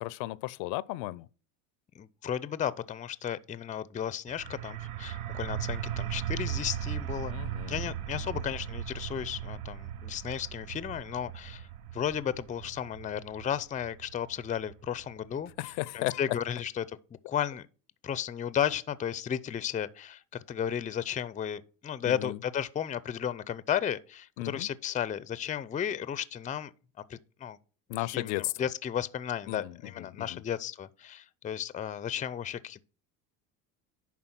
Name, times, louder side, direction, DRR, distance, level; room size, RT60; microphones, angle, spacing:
voice 1, 0.0-1.3 7.3-7.9 8.2-8.4 15.6-16.2 22.0-22.4 24.4-24.7 27.9-28.5 29.5-30.4, left 19 dB, 65° left, 0.6 m, -35 dB
voice 2, 1.9-7.3 7.7-11.7 11.9-15.5 15.9-17.7 18.0-27.6 28.0-32.8, left 9 dB, 20° left, 0.5 m, -34 dB
sound 1, 4.3-15.7, right 10 dB, 70° right, 0.8 m, -38 dB
10.5 x 3.7 x 6.0 m
hypercardioid pair, 85°, 43 cm